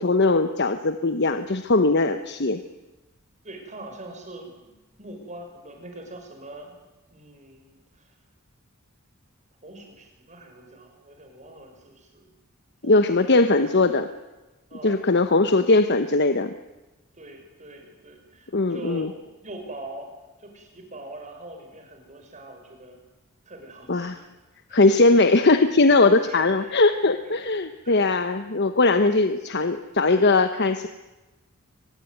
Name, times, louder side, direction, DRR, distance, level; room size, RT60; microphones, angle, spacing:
voice 1, 0.0-2.6 12.8-14.1 14.8-16.5 18.5-19.1 23.9-24.2 24.7-30.9, left 3 dB, 50° left, 9 dB, 1.1 m, -20 dB
voice 2, 3.4-4.7 5.0-6.8 7.1-8.1 9.6-12.3 12.8-13.8 14.7-15.0 17.1-20.1 20.4-23.0 23.5-24.3 24.7-24.9 26.2-27.0 27.2-28.1, right 1 dB, 35° right, 3 dB, 6.1 m, -43 dB
24.0 x 21.0 x 9.4 m, 1.1 s
head